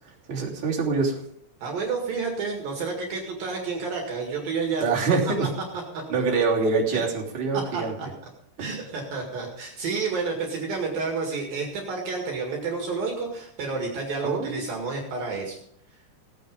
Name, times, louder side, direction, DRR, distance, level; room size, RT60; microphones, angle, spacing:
voice 1, 0.3-1.2 4.8-5.5 6.1-7.9 8.6-8.7 14.2-14.6, right 4 dB, 30° right, -4 dB, 3.5 m, -25 dB
voice 2, 1.6-4.8 5.9-6.0 6.9-7.0 7.5-8.1 8.6-15.6, right 4 dB, 60° right, 0 dB, 3.5 m, -30 dB
17.0 x 9.2 x 5.3 m, 0.69 s
omnidirectional pair, 4.9 m